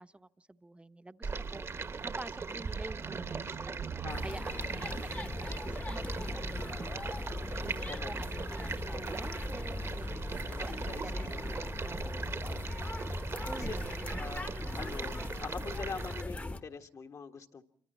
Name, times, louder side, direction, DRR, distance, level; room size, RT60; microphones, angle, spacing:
voice 1, 0.0-6.9 7.6-12.8 13.5-14.2, right 2 dB, 15° right, 11 dB, 0.9 m, -48 dB
Stream, 1.2-16.2, right 4 dB, 40° right, 1.1 m, -40 dB
sound 1, 2.9-7.1, right 7 dB, 70° right, 1.9 m, -46 dB
voice 2, 4.0-5.1 7.9-8.1 10.4-11.6 12.2-12.7 13.6-13.7 14.2-14.5 14.7-17.6, left 5 dB, 50° left, 6 dB, 1.5 m, -44 dB
sound 2, 4.1-16.6, left 2 dB, 20° left, 1.1 m, -39 dB
26.5 x 24.0 x 4.3 m, 0.63 s
supercardioid pair, 55°, 7 cm